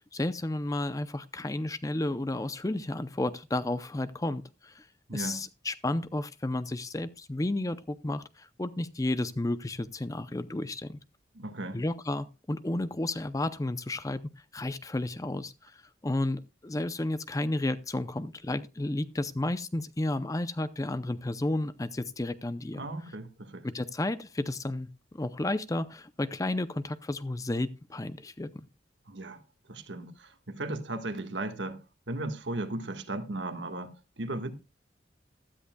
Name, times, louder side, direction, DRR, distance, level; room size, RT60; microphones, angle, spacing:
voice 1, 0.1-4.9 5.1-11.0 11.7-14.2 14.5-22.8 23.6-24.9 25.1-28.5, left 2 dB, 20° left, 0.5 m, -32 dB
voice 2, 5.1-5.5 11.3-11.8 22.7-23.7 29.1-29.4 29.7-34.5, right 2 dB, 80° right, 1.5 m, -36 dB
15.0 x 13.0 x 2.3 m
head